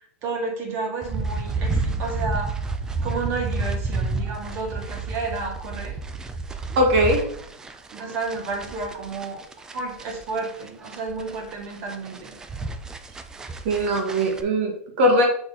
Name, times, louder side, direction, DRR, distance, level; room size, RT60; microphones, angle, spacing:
voice 1, 0.2-2.5 3.0-6.0 7.9-9.4 9.7-12.3, right 4 dB, 30° right, 1 dB, 1.9 m, -31 dB
sound 1, 1.0-14.4, right 3 dB, 10° right, 0.4 m, -31 dB
voice 2, 6.7-7.2 13.6-15.2, equal, 50° right, 1 dB, 1.8 m, -20 dB
6.7 x 4.2 x 4.1 m, 0.62 s
supercardioid pair, 160°, 7 cm